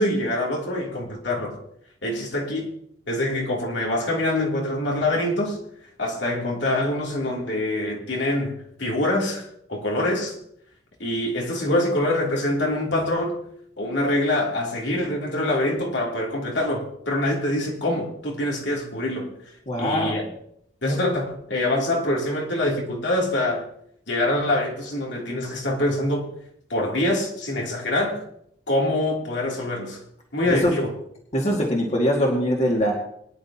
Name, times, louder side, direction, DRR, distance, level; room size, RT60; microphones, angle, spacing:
voice 1, 0.0-1.6 2.0-2.7 3.1-5.6 6.0-10.4 11.0-13.4 13.8-19.3 19.8-20.3 20.8-23.6 24.1-26.3 26.7-28.2 28.7-30.0 30.3-30.9, left 1 dB, 70° left, 3.1 m, -25 dB
voice 2, 19.7-20.2 30.5-30.7 31.3-32.9, equal, 40° left, 2.2 m, -22 dB
22.5 x 10.5 x 2.9 m
head